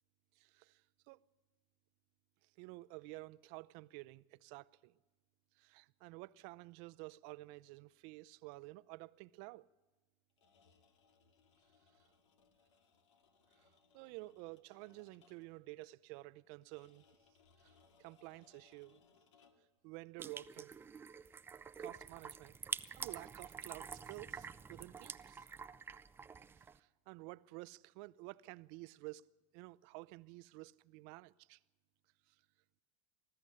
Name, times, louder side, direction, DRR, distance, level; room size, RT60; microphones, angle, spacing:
voice 1, 0.4-1.2 2.6-5.0 5.6-9.7 13.6-17.0 17.6-19.0 19.8-20.8 21.8-22.6 23.0-25.5 26.7-29.2 29.5-31.6 32.3-32.4, right 21 dB, 55° right, 0.6 m, -52 dB
sound 1, 10.3-15.7 16.7-19.8, left 5 dB, 90° left, 2.1 m, -70 dB
sound 2, 20.2-26.8, right 6 dB, 15° right, 0.5 m, -47 dB
20.0 x 14.0 x 9.8 m
supercardioid pair, 125°, 15 cm